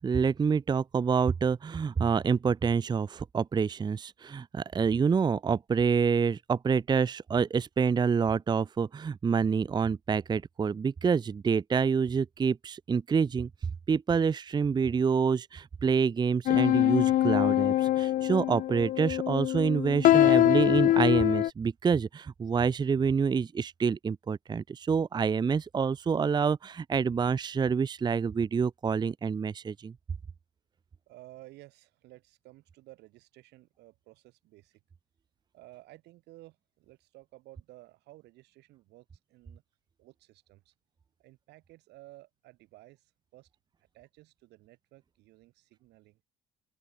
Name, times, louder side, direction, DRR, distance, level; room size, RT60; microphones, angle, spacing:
voice 1, 0.0-13.5 13.9-29.9, right 6 dB, 25° right, 0.6 m, -27 dB
sound 1, 16.5-21.5, left 13 dB, 55° left, 0.4 m, -24 dB
voice 2, 31.1-34.8 35.5-39.6 40.0-40.7 41.2-43.5 43.9-46.2, right 18 dB, 85° right, 7.8 m, -54 dB
open air
cardioid pair, 110°, 17 cm